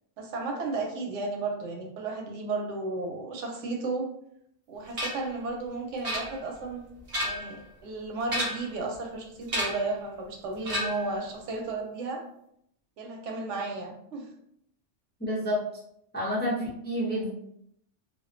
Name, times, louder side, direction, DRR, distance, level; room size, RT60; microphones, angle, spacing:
voice 1, 0.2-4.0 4.7-6.8 7.2-12.2 13.0-14.3, right 3 dB, 90° right, 1 dB, 0.9 m, -33 dB
sound 1, 5.0-5.3 6.0-6.6 7.0-7.6 8.2-8.8 9.5-9.9 10.6-11.1, equal, 40° right, 0.7 m, -32 dB
voice 2, 15.2-15.6 16.1-17.3, equal, 15° left, -7 dB, 0.3 m, -29 dB
2.4 x 2.2 x 2.4 m, 0.73 s
omnidirectional pair, 1.2 m